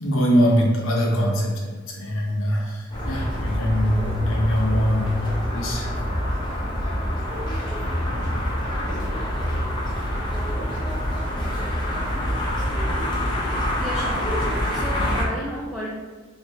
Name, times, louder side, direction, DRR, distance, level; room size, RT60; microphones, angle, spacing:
voice 1, 0.0-5.1 5.5-5.8, equal, 80° left, -1 dB, 0.9 m, -22 dB
sound 1, 2.9-15.2, equal, 25° left, 0.8 m, -26 dB
voice 2, 13.8-14.3 14.7-15.9, equal, ahead, -4 dB, 0.3 m, -32 dB
3.2 x 2.8 x 4.6 m, 1.4 s
head